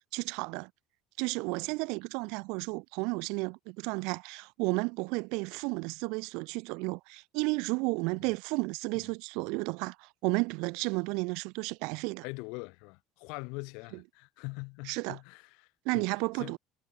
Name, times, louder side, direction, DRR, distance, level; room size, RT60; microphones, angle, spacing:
voice 1, 0.1-0.7 1.2-12.2 14.9-15.2 15.9-16.6, right 29 dB, 75° right, 0.3 m, -32 dB
voice 2, 12.2-16.1 16.3-16.6, left 31 dB, 75° left, 2.2 m, -43 dB
supercardioid pair, 85°, 0 cm